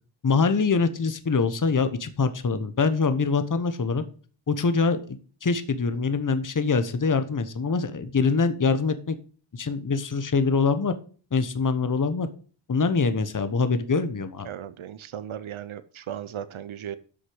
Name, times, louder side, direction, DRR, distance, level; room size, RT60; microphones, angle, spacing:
voice 1, 0.2-4.0 4.5-9.2 9.5-10.9 11.3-12.3 12.7-14.5, left 4 dB, 40° left, 11 dB, 1.1 m, -24 dB
voice 2, 14.4-17.0, right 10 dB, 85° right, 14 dB, 0.8 m, -36 dB
8.2 x 6.2 x 7.8 m, 0.41 s
wide cardioid pair, 65°, 47 cm